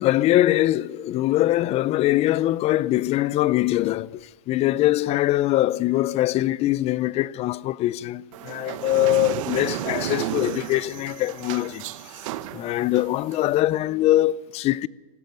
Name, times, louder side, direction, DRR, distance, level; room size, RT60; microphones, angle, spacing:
voice 1, 0.0-11.9 12.5-14.9, left 15 dB, 35° left, 0.5 m, -22 dB
sound 1, 8.3-13.6, right 13 dB, 60° right, 1.2 m, -33 dB
17.0 x 16.5 x 9.4 m
hypercardioid pair, 110°, 18 cm